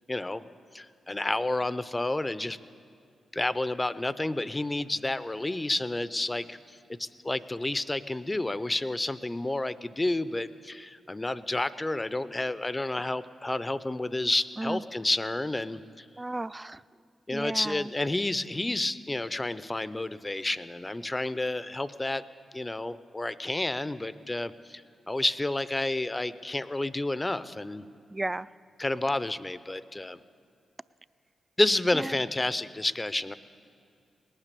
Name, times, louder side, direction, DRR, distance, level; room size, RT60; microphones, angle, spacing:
voice 1, 0.1-0.5 0.7-2.6 3.3-6.6 6.9-16.0 17.3-22.2 22.5-27.8 28.8-30.2 31.6-33.3, left 2 dB, 25° left, 16 dB, 0.5 m, -30 dB
voice 2, 16.2-16.8 17.3-17.9 28.1-28.5 31.9-32.0, right 2 dB, 25° right, 18 dB, 0.3 m, -33 dB
18.5 x 9.1 x 6.7 m, 2.4 s
supercardioid pair, 40°, 0 cm